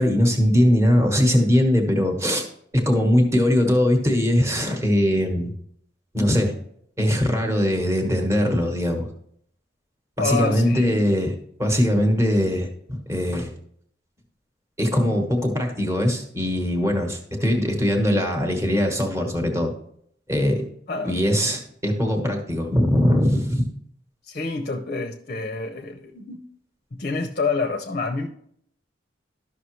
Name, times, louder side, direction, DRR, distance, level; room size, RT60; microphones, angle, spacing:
voice 1, 0.0-2.5 2.7-5.5 6.1-6.5 7.0-9.1 10.2-11.3 11.6-13.5 14.8-19.7 20.3-20.7 21.1-23.6, equal, 15° right, 3 dB, 1.2 m, -21 dB
voice 2, 10.2-11.0 20.9-21.4 24.3-26.4 26.9-28.3, left 3 dB, 40° left, 4 dB, 0.6 m, -27 dB
12.5 x 5.9 x 3.1 m, 0.68 s
head